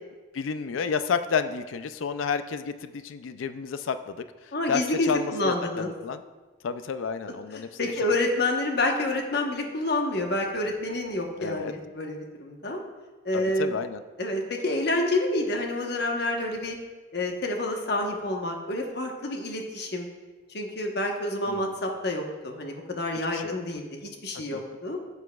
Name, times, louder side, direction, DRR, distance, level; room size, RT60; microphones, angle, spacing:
voice 1, 0.3-6.2 6.6-7.9 11.4-11.7 13.3-14.0 21.5-21.8 23.3-23.6 24.5-24.6, left 6 dB, 80° left, 11 dB, 0.4 m, -31 dB
voice 2, 4.5-5.9 7.5-12.8 13.2-13.8 14.2-16.8 17.1-20.1 20.5-25.0, left 2 dB, 55° left, 2 dB, 1.1 m, -28 dB
12.5 x 8.2 x 2.3 m, 1.3 s
head